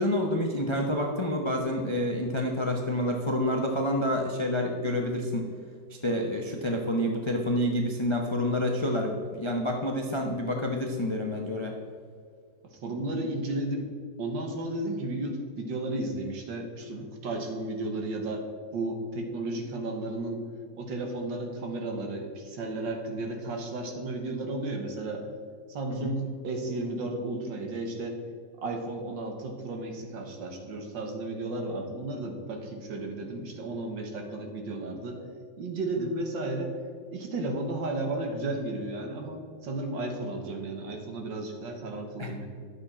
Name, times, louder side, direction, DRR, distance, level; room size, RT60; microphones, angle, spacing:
voice 1, 0.0-5.5 5.9-11.8 17.0-17.1 25.9-26.1 36.0-36.1 42.2-42.3, left 1 dB, 50° left, 1 dB, 0.3 m, -28 dB
voice 2, 12.6-13.9 14.2-18.5 18.7-20.4 20.7-25.2 25.7-28.2 28.6-35.2 35.6-36.8 37.1-42.5, right 2 dB, 70° right, 3 dB, 2.0 m, -33 dB
11.5 x 7.4 x 4.2 m, 2.1 s
omnidirectional pair, 2.1 m